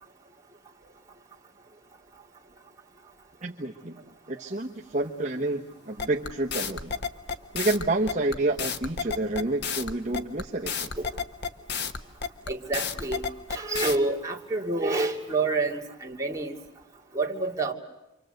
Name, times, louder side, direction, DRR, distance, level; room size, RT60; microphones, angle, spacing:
voice 1, 3.4-4.0 4.3-6.9 7.5-10.9, right 2 dB, 35° right, -1 dB, 1.3 m, -29 dB
sound 1, 6.0-14.0, left 6 dB, 50° left, 1.3 m, -31 dB
voice 2, 12.5-13.2 13.5-16.5 17.1-17.7, right 3 dB, 15° right, -2 dB, 2.7 m, -28 dB
28.0 x 25.5 x 8.0 m, 0.97 s
head